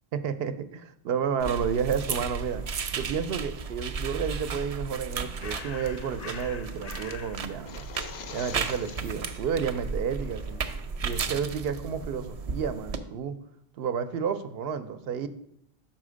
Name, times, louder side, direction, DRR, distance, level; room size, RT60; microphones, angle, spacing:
voice 1, 0.1-2.6 2.9-7.9 8.3-10.6 11.0-13.4 13.8-15.3, right 7 dB, 75° right, 10 dB, 0.8 m, -31 dB
sound 1, 1.4-13.0, right 5 dB, 50° right, 0.5 m, -34 dB
Bird, 4.9-10.9, left 6 dB, 50° left, 0.5 m, -47 dB
sound 2, 7.5-9.3, left 7 dB, 80° left, 0.9 m, -43 dB
5.7 x 4.4 x 6.2 m, 0.72 s
omnidirectional pair, 1.0 m